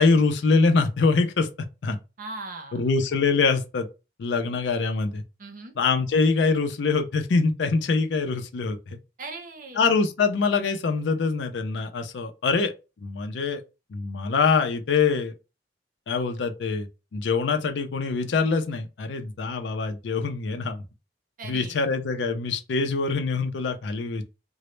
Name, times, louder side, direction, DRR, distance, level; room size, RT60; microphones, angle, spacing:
voice 1, 0.0-1.5 1.8-2.0 2.7-3.9 4.2-5.2 5.8-9.0 9.8-12.7 13.0-13.6 13.9-15.3 16.1-20.8 21.4-24.3, left 4 dB, 90° left, 0.4 m, -24 dB
voice 2, 2.2-2.8 5.4-5.8 9.2-9.8 21.4-21.9, right 3 dB, 50° right, 0.5 m, -39 dB
2.0 x 2.0 x 3.0 m
head